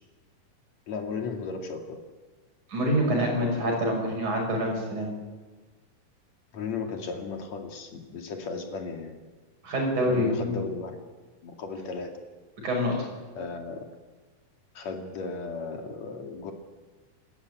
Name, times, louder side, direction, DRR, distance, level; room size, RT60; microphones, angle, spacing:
voice 1, 0.9-2.0 3.6-4.0 6.5-9.1 10.0-11.0 11.4-12.2 13.4-13.8 14.7-16.5, left 4 dB, 55° left, 4 dB, 3.3 m, -35 dB
voice 2, 2.7-5.1 9.6-10.6 12.6-13.0, equal, 60° right, 0 dB, 7.7 m, -26 dB
28.0 x 13.0 x 9.3 m, 1.3 s
omnidirectional pair, 3.9 m